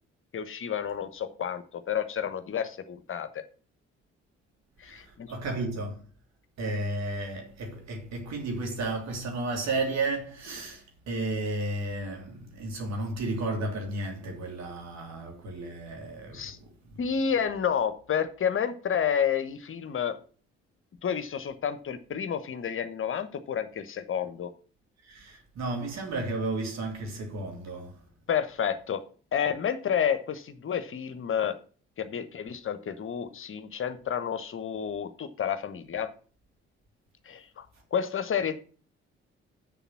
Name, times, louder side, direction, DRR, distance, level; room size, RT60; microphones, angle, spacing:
voice 1, 0.3-3.4 4.8-5.3 16.3-16.6 17.0-20.2 21.0-24.5 28.3-29.0 29.3-31.6 32.0-36.1 37.3-37.6 37.9-38.6, left 8 dB, 40° left, 1.0 m, -30 dB
voice 2, 4.9-6.0 6.6-16.5 25.0-28.0, right 2 dB, 50° right, 3.0 m, -33 dB
7.6 x 7.1 x 5.8 m
figure-of-eight pair, 45°, 33 cm